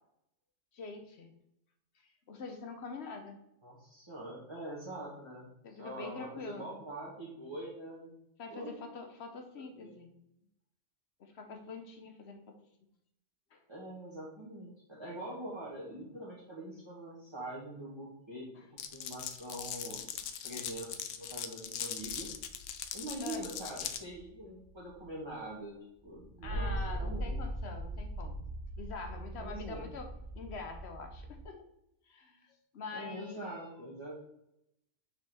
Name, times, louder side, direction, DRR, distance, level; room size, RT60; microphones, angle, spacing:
voice 1, 0.7-1.3 2.3-3.4 5.6-6.7 8.4-10.1 11.2-12.5 13.5-13.6 23.2-23.4 26.4-28.4 28.8-30.1 30.3-31.6 32.1-33.5, left 4 dB, 65° left, 5 dB, 1.0 m, -45 dB
voice 2, 3.6-8.1 8.5-8.7 9.7-10.0 13.7-20.0 20.4-22.3 22.9-25.8 26.0-27.3 29.4-29.9 32.9-34.3, right 1 dB, 25° right, -6 dB, 1.3 m, -44 dB
Glass, 18.8-24.0, left 9 dB, 90° left, 0.9 m, -40 dB
sound 1, 22.0-25.3 26.1-31.5, right 1 dB, 55° right, 0.5 m, -40 dB
6.1 x 4.6 x 3.4 m, 0.82 s
omnidirectional pair, 1.3 m